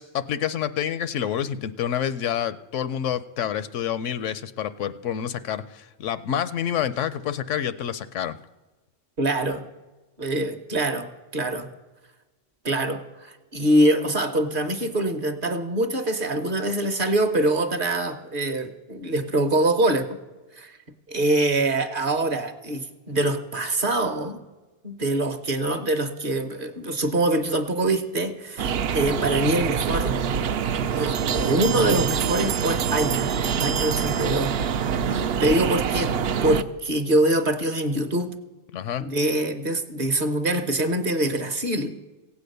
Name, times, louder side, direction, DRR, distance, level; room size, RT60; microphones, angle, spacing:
voice 1, 0.0-8.4 38.7-39.0, left 9 dB, 75° left, 14 dB, 0.9 m, -28 dB
voice 2, 9.2-9.6 10.2-11.7 12.6-20.2 20.5-20.8 21.1-24.4 24.8-30.1 31.0-34.5 35.1-36.1 36.4-38.3 39.0-41.9, right 1 dB, 45° right, 8 dB, 1.1 m, -24 dB
sound 1, 28.6-36.6, right 7 dB, 60° right, 0.7 m, -25 dB
sound 2, 31.1-34.9, right 9 dB, 85° right, 1.1 m, -33 dB
16.0 x 8.5 x 6.6 m, 1.2 s
omnidirectional pair, 1.4 m